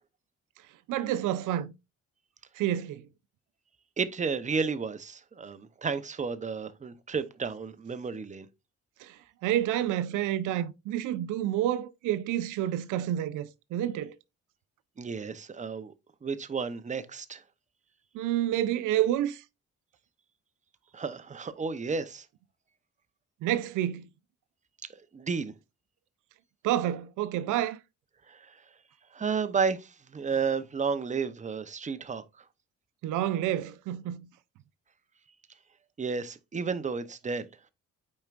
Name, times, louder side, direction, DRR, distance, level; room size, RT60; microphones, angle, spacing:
voice 1, 0.9-1.7 2.6-3.0 9.0-14.2 18.1-19.4 23.4-24.1 26.6-27.8 33.0-34.3, right 12 dB, 85° right, 0.6 m, -29 dB
voice 2, 4.0-8.5 15.0-15.9 16.2-17.4 20.9-22.2 25.1-25.5 28.3-28.4 29.1-32.2 36.0-37.5, right 5 dB, 25° right, 0.8 m, -32 dB
8.7 x 4.5 x 2.5 m
cardioid pair, 90°, 30 cm